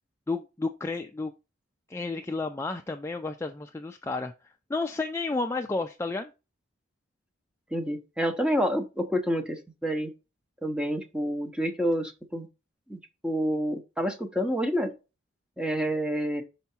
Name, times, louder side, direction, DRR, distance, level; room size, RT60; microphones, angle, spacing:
voice 1, 0.3-1.3 1.9-4.3 4.7-6.3, left 3 dB, 15° left, 0.3 m, -31 dB
voice 2, 7.7-10.1 10.6-12.5 12.9-14.9 15.6-16.4, equal, 5° right, 0.8 m, -28 dB
5.8 x 4.5 x 4.3 m
head